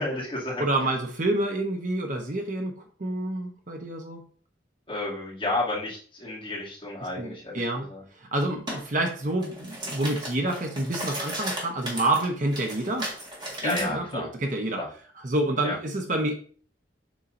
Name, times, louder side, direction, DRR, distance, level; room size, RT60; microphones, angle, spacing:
voice 1, 0.0-0.6 4.9-7.6 7.9-8.0 13.6-14.3 14.8-14.9 15.6-15.7, left 2 dB, 30° left, -6 dB, 2.5 m, -31 dB
voice 2, 0.6-4.2 7.2-7.9 8.1-13.1 13.6-14.8 15.1-16.3, right 1 dB, 45° right, 3 dB, 0.9 m, -28 dB
sound 1, 8.7-8.8 9.3-13.9, right 1 dB, 25° right, 1.7 m, -35 dB
7.1 x 5.5 x 2.6 m, 0.44 s
head